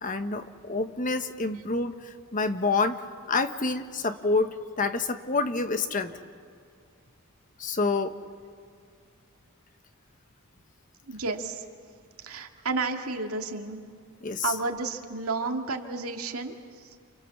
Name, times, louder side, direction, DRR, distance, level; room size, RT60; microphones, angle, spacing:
voice 1, 0.0-3.0 3.3-6.1 7.6-8.1 14.2-14.5, left 3 dB, 35° left, 9 dB, 1.2 m, -28 dB
voice 2, 11.1-11.6 12.2-13.8 14.4-17.0, right 3 dB, 80° right, 3 dB, 2.3 m, -32 dB
29.0 x 28.5 x 7.2 m, 2.3 s
head